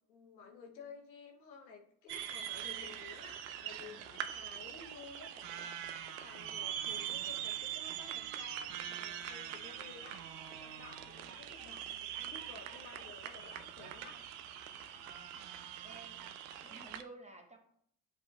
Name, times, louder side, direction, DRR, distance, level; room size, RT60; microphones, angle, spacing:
voice 1, 0.1-14.2 16.5-16.9, left 5 dB, 90° left, 2 dB, 0.8 m, -54 dB
sound 1, 2.1-17.0, right 10 dB, 75° right, 0.5 m, -43 dB
voice 2, 14.9-16.2 16.7-17.6, right 2 dB, 15° right, 3 dB, 0.9 m, -55 dB
7.7 x 2.8 x 2.2 m, 0.67 s
hypercardioid pair, 55°, 49 cm